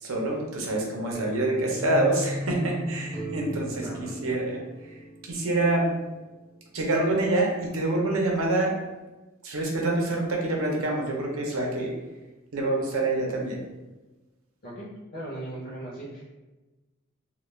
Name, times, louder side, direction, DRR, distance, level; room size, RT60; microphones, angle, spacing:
voice 1, 0.0-4.9 5.2-5.9 6.7-8.8 9.4-11.9 12.5-13.6, right 2 dB, 80° right, -1 dB, 0.6 m, -26 dB
sound 1, 1.1-6.0, equal, 40° right, 0.8 m, -36 dB
voice 2, 3.4-4.4 14.6-14.9 15.1-16.2, right 1 dB, 45° left, -6 dB, 0.6 m, -39 dB
2.3 x 2.2 x 3.1 m, 1.1 s
head